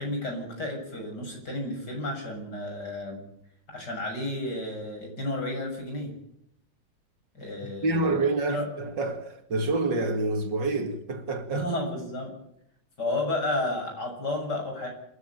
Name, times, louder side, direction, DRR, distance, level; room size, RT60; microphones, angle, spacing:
voice 1, 0.0-3.2 3.7-6.1 7.3-8.2 8.5-8.6 11.5-12.3 13.0-14.9, left 1 dB, 60° left, 7.6 m, -32 dB
voice 2, 7.8-11.7, right 2 dB, 70° right, 2.9 m, -27 dB
28.0 x 11.5 x 9.4 m
omnidirectional pair, 2.1 m